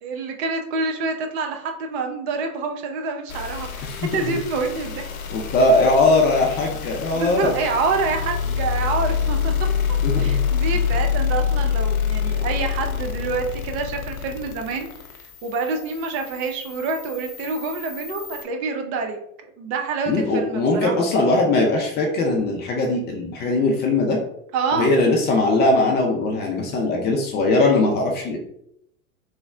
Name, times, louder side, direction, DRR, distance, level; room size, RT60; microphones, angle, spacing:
voice 1, 0.0-5.1 7.1-9.5 10.1-14.9 15.4-21.1 24.5-24.9 26.7-27.0, right 4 dB, 45° right, 4 dB, 0.7 m, -27 dB
sound 1, 3.3-18.4, left 7 dB, 70° left, 0.7 m, -26 dB
voice 2, 3.8-4.4 5.3-7.5 10.0-10.4 10.7-10.8 20.1-24.2 24.7-28.4, left 2 dB, 25° left, 1 dB, 0.5 m, -20 dB
3.2 x 2.1 x 3.5 m, 0.73 s
hypercardioid pair, 105°, 44 cm